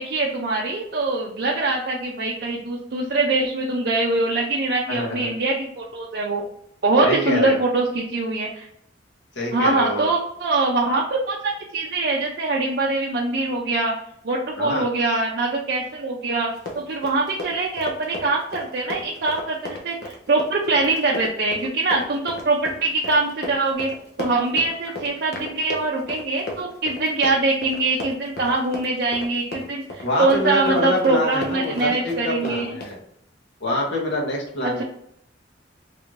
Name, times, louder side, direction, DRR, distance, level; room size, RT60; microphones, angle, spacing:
voice 1, 0.0-6.4 6.8-8.7 9.5-13.9 14.2-16.5 16.7-23.9 24.2-32.8 34.6-34.8, right 3 dB, 55° right, -3 dB, 0.4 m, -23 dB
voice 2, 4.9-5.3 7.0-7.6 9.3-10.0 14.6-14.8 30.0-33.0 33.6-34.8, left 1 dB, 75° left, -3 dB, 1.2 m, -25 dB
Run, 16.5-33.0, left 1 dB, 55° left, 0.7 m, -35 dB
3.3 x 2.5 x 3.0 m, 0.73 s
head